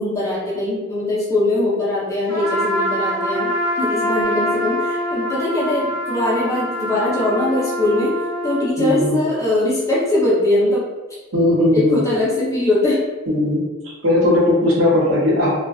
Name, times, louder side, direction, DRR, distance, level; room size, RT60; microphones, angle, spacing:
voice 1, 0.0-3.5 3.8-8.1 8.4-10.8 11.7-13.0 14.6-14.7, left 1 dB, 15° left, -6 dB, 0.6 m, -21 dB
Trumpet, 2.3-8.7, equal, 10° right, 0.9 m, -24 dB
voice 2, 8.8-9.2 11.3-12.0 13.3-13.6 14.0-15.5, left 1 dB, 75° right, -4 dB, 0.7 m, -17 dB
2.4 x 2.3 x 2.3 m, 1.2 s
head